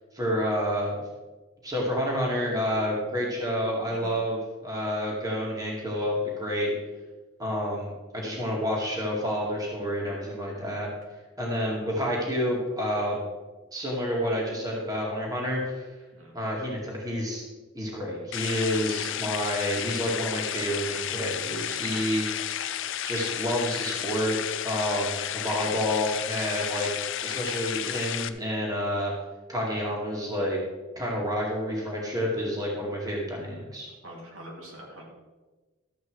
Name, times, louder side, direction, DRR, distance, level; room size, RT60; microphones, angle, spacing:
voice 1, 0.1-1.0 1.6-6.7 7.4-10.9 11.4-13.2 13.7-15.9 16.3-17.4 17.7-22.3 23.0-24.4 24.6-26.9 27.2-29.1 29.5-30.6 31.0-33.9, equal, 15° right, -3 dB, 2.2 m, -29 dB
sound 1, 18.3-28.3, left 11 dB, 60° left, 0.6 m, -32 dB
voice 2, 34.0-35.0, right 1 dB, 65° right, -3 dB, 3.1 m, -44 dB
13.0 x 7.9 x 4.7 m, 1.3 s
head